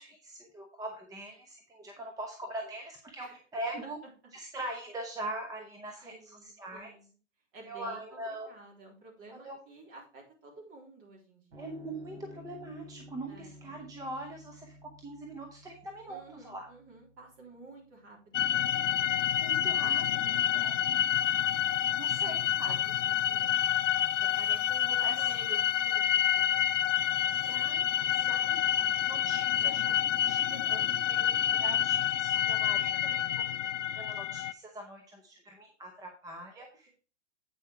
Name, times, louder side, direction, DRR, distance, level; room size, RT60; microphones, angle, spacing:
voice 1, 0.0-4.0 4.3-6.9 7.7-8.5 9.4-9.6 11.6-16.7 19.3-20.8 21.8-22.7 24.9-25.2 27.4-30.8 31.0-33.5 33.9-36.9, right 1 dB, 10° right, 3 dB, 0.9 m, -42 dB
voice 2, 6.0-7.1 7.5-8.2 8.5-11.7 13.3-13.6 16.1-19.0 20.3-20.7 22.6-27.1 29.6-31.1, right 3 dB, 35° right, -1 dB, 3.6 m, -52 dB
sound 1, 11.5-18.2, equal, 80° right, 3.9 m, -53 dB
sound 2, 18.3-34.5, left 10 dB, 90° left, 0.6 m, -28 dB
8.4 x 5.4 x 4.4 m, 0.37 s
hypercardioid pair, 130°, 36 cm